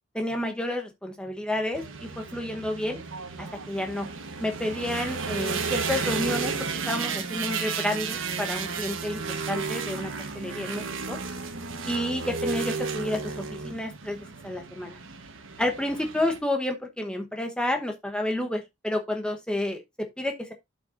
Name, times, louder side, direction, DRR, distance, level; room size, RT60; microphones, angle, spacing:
voice 1, 0.1-3.0 3.4-4.1 4.4-9.2 9.5-11.2 11.8-14.9 15.6-20.5, left 1 dB, 5° left, 1.1 m, -30 dB
sound 1, 1.7-16.4, right 5 dB, 80° right, 1.3 m, -33 dB
12.0 x 5.3 x 2.6 m
head